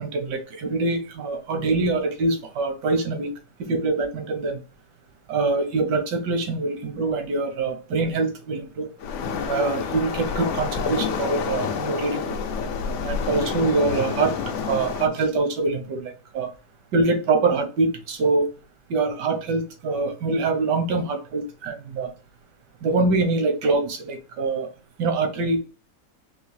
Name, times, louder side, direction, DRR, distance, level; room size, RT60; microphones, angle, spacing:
voice 1, 0.0-3.3 3.6-4.6 5.3-8.9 9.4-12.4 13.0-14.3 14.6-16.5 16.9-18.5 18.9-22.1 22.8-24.7 25.0-25.6, right 3 dB, 80° right, 6 dB, 1.5 m, -24 dB
Waves surf, 9.0-15.1, left 6 dB, 75° left, 0.7 m, -28 dB
4.5 x 2.8 x 3.2 m, 0.34 s
omnidirectional pair, 1.8 m